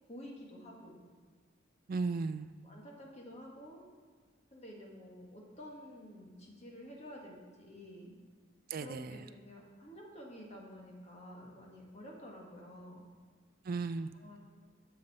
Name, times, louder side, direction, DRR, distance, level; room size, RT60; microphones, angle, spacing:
voice 1, 0.1-1.0 2.6-3.8 4.5-8.2 8.8-13.0 14.1-14.4, equal, 35° left, -1 dB, 1.7 m, -50 dB
voice 2, 1.9-2.5 8.7-9.2 13.7-14.1, right 4 dB, 50° right, 10 dB, 0.3 m, -35 dB
12.0 x 6.8 x 4.2 m, 1.5 s
head